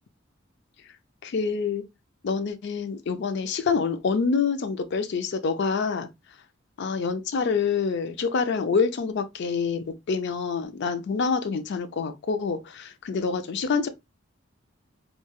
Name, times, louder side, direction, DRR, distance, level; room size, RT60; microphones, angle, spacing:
voice 1, 1.2-1.9 2.2-6.1 6.8-13.9, left 5 dB, 60° left, 0.4 m, -26 dB
3.1 x 2.2 x 2.2 m
head